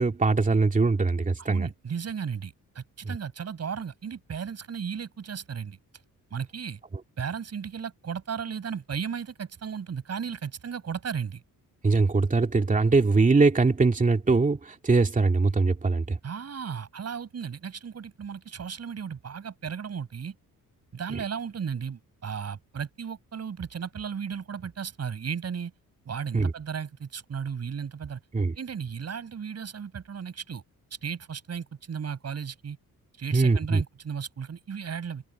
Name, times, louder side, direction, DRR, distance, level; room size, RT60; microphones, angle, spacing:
voice 1, 0.0-1.7 3.0-3.2 11.8-16.2 26.3-26.5 28.3-28.6 33.3-33.8, right 3 dB, 25° right, 2.6 m, -22 dB
voice 2, 1.4-5.8 6.3-6.8 7.2-11.4 16.2-20.4 20.9-25.7 26.0-28.2 28.5-30.6 31.0-32.8 33.2-35.2, right 7 dB, 45° right, 6.4 m, -35 dB
cardioid pair, 130°, 34 cm